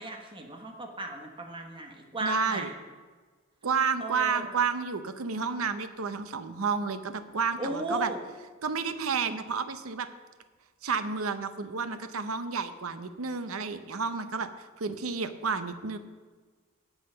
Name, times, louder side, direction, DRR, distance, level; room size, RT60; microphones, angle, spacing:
voice 1, 0.0-2.7 4.0-4.5 7.6-8.2, right 1 dB, 25° right, 3 dB, 1.3 m, -35 dB
voice 2, 2.2-2.7 3.6-8.1 8.6-10.1 10.8-16.0, right 5 dB, 85° right, 11 dB, 0.8 m, -31 dB
17.0 x 5.7 x 5.7 m, 1.4 s
head